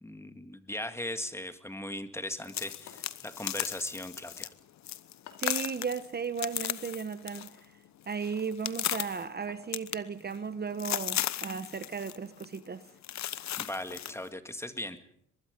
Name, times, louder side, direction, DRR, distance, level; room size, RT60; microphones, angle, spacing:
voice 1, 0.0-4.5 13.6-15.0, left 1 dB, 10° left, 1.9 m, -38 dB
sound 1, 2.4-4.5 4.8-5.1 5.4-7.6 7.9-9.2 9.7-10.5 10.8-12.2 12.4-12.6 13.0-14.1, left 12 dB, 65° left, 1.0 m, -35 dB
sound 2, 2.9-3.4 5.3-5.6 7.4-7.7 9.5-9.8 11.3-11.7 12.3-12.5 13.9-14.4, left 9 dB, 90° left, 2.7 m, -54 dB
voice 2, 5.4-7.7 8.1-12.8, right 6 dB, 35° right, 1.1 m, -35 dB
24.0 x 21.5 x 5.3 m
cardioid pair, 90°, 30 cm